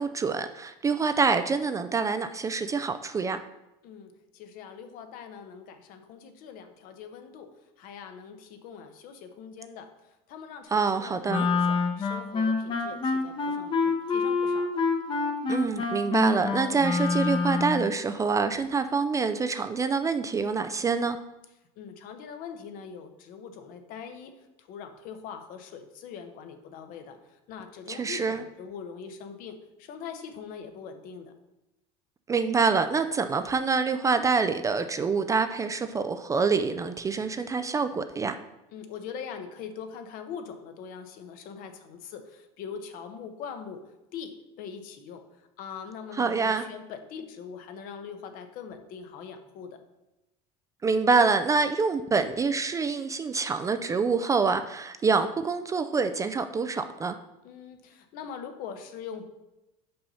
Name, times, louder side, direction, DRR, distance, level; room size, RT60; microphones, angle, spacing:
voice 1, 0.0-3.4 10.7-11.5 15.5-21.2 27.9-28.4 32.3-38.4 46.1-46.7 50.8-57.1, right 4 dB, 20° right, 10 dB, 0.3 m, -26 dB
voice 2, 3.8-9.9 10.3-14.8 20.8-21.1 21.8-31.3 37.1-37.3 38.7-49.8 57.4-59.3, left 6 dB, 60° left, 7 dB, 0.9 m, -42 dB
Wind instrument woodwind instrument, 11.3-17.9, left 4 dB, 30° left, 0.9 m, -27 dB
5.5 x 5.4 x 4.3 m, 0.96 s
supercardioid pair, 120°, 16 cm